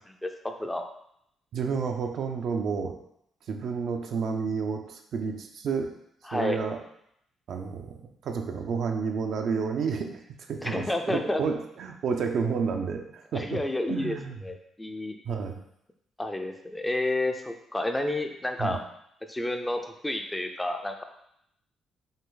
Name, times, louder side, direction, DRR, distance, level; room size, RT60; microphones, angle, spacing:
voice 1, 0.2-0.8 6.3-6.6 10.6-11.4 13.3-14.2 14.4-15.2 16.2-18.8 19.3-21.0, left 1 dB, 10° left, 5 dB, 0.5 m, -30 dB
voice 2, 1.5-3.0 3.5-5.9 6.3-6.8 7.5-10.2 10.5-13.6 13.9-14.4 15.2-15.6 18.6-18.8, right 5 dB, 65° right, 4 dB, 0.6 m, -30 dB
5.5 x 2.5 x 3.8 m, 0.74 s
cardioid pair, 90°, 0 cm